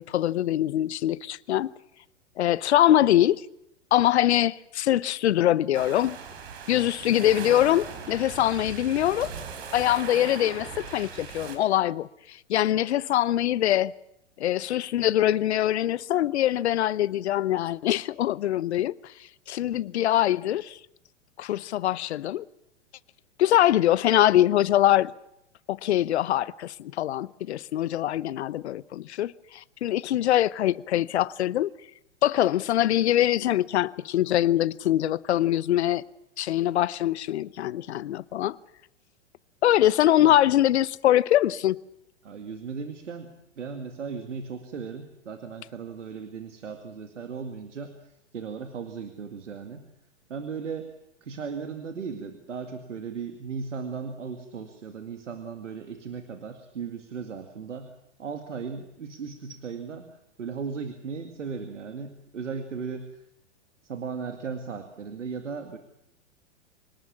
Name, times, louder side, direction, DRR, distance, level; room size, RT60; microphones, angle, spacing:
voice 1, 0.0-1.7 2.4-3.4 3.9-6.2 6.7-9.3 9.7-13.9 14.4-18.9 19.5-20.8 21.4-22.4 23.4-25.1 25.7-31.7 32.2-36.0 36.4-38.6 39.6-41.8, left 13 dB, 65° left, 0.9 m, -23 dB
sound 1, 5.7-11.6, right 6 dB, 55° right, 4.9 m, -39 dB
voice 2, 42.2-49.9 50.3-50.9 51.2-57.9 58.2-63.2 63.8-65.8, right 5 dB, 80° right, 2.2 m, -37 dB
25.0 x 19.0 x 7.4 m
figure-of-eight pair, 105°, 36 cm